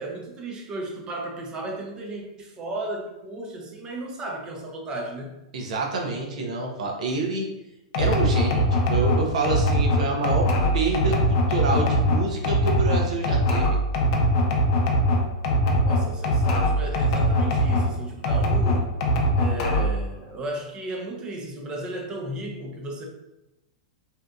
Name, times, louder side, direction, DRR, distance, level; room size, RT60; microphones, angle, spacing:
voice 1, 0.0-5.4 15.8-18.9 19.3-23.0, right 1 dB, 20° right, 1 dB, 0.5 m, -34 dB
voice 2, 5.5-7.5 8.0-13.8, right 3 dB, 80° right, 1 dB, 0.6 m, -27 dB
sound 1, 7.9-17.9 18.2-20.0, equal, 50° left, 0.5 m, -21 dB
2.7 x 2.4 x 2.2 m, 0.93 s
supercardioid pair, 145°, 4 cm